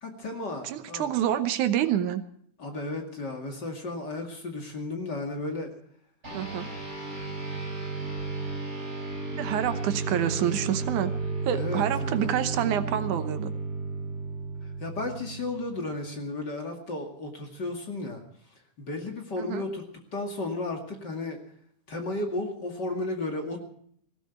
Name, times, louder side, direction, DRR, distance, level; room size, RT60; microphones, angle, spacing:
voice 1, 0.0-1.1 2.6-5.7 11.5-12.3 14.8-18.2 18.8-19.8 20.1-21.4 21.9-23.6, left 2 dB, 35° left, 2 dB, 2.5 m, -34 dB
voice 2, 0.6-2.2 6.3-6.7 9.3-11.1 11.4-13.5 19.4-19.7, right 10 dB, 80° right, 10 dB, 2.4 m, -27 dB
sound 1, 6.2-16.0, right 3 dB, 20° right, 7.3 m, -33 dB
19.0 x 16.5 x 4.5 m, 0.65 s
omnidirectional pair, 3.6 m